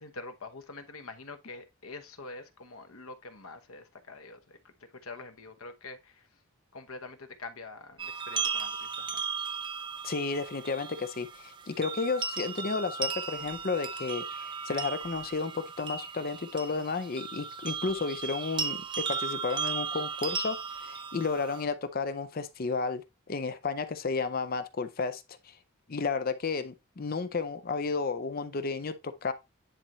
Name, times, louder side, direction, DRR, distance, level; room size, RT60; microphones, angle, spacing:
voice 1, 0.0-6.3 6.7-9.2, left 3 dB, 70° left, 1.1 m, -45 dB
sound 1, 8.0-21.6, right 5 dB, 20° right, 0.5 m, -36 dB
voice 2, 10.0-25.6 25.9-29.3, left 4 dB, 40° left, 0.5 m, -32 dB
10.0 x 4.3 x 3.1 m
head